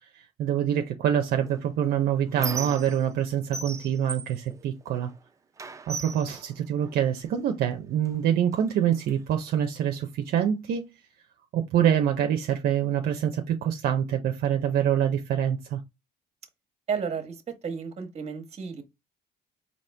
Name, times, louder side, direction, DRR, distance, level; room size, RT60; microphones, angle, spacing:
voice 1, 0.4-5.1 5.9-10.8 11.5-15.8, right 9 dB, 65° right, 0.7 m, -25 dB
Squeak, 1.5-3.2 3.5-5.2 5.6-7.3 8.0-8.2 8.5-9.5, right 4 dB, 20° right, 0.6 m, -38 dB
voice 2, 16.9-18.8, right 6 dB, 40° right, 1.2 m, -32 dB
4.2 x 2.8 x 3.3 m
cardioid pair, 110°, 17 cm